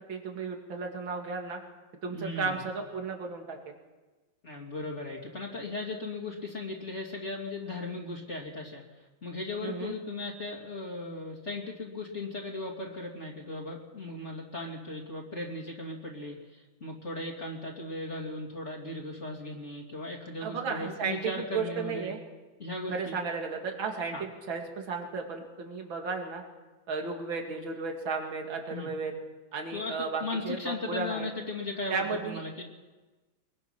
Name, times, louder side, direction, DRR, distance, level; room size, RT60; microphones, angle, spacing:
voice 1, 0.0-1.6 2.0-3.6 9.6-9.9 20.4-22.2 22.9-26.4 26.9-29.1 29.5-31.3 31.9-32.4, right 4 dB, 80° right, 2 dB, 2.9 m, -34 dB
voice 2, 2.1-2.6 4.4-8.8 9.2-22.1 22.6-23.1 24.1-24.2 28.7-28.9 29.7-29.9 30.2-32.6, left 2 dB, 35° left, -2 dB, 2.9 m, -37 dB
23.5 x 22.0 x 6.0 m, 1.2 s
omnidirectional pair, 2.1 m